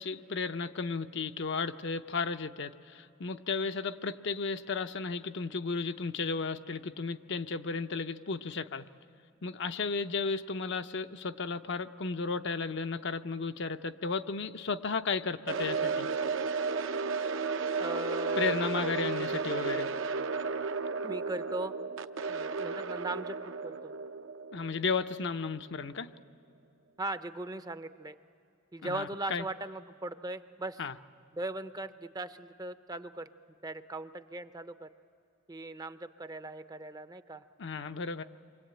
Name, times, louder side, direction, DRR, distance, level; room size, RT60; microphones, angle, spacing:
voice 1, 0.0-8.9 9.4-16.1 18.4-19.9 24.5-26.1 28.8-29.4 30.8-30.9 37.6-38.2, left 4 dB, 60° left, 8 dB, 0.7 m, -34 dB
sound 1, 15.5-25.5, right 4 dB, 65° right, 0.7 m, -33 dB
voice 2, 17.8-18.9 21.0-21.7 22.3-23.4 23.6-23.9 27.0-28.2 28.7-30.8 31.3-33.3 33.6-34.9 35.5-37.4, right 2 dB, 20° right, 11 dB, 0.6 m, -39 dB
28.5 x 24.0 x 8.9 m, 2.5 s
head